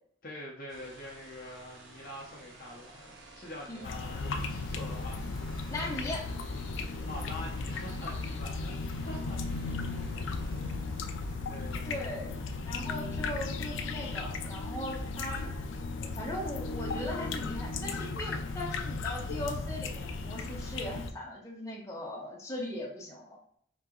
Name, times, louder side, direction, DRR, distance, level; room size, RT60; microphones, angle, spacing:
voice 1, 0.2-5.2 5.5-5.7 6.8-9.7 11.4-11.9, left 1 dB, 45° left, -3 dB, 0.7 m, -45 dB
sound 1, 0.7-12.9 15.0-15.1 15.4-19.8, right 1 dB, 70° right, 1.0 m, -52 dB
sound 2, 3.8-21.1, left 3 dB, 70° left, 0.4 m, -36 dB
voice 2, 5.7-6.3 11.8-12.3 12.7-15.6 16.0-23.4, left 1 dB, 15° left, -4 dB, 1.0 m, -39 dB
4.0 x 2.8 x 3.7 m, 0.62 s
head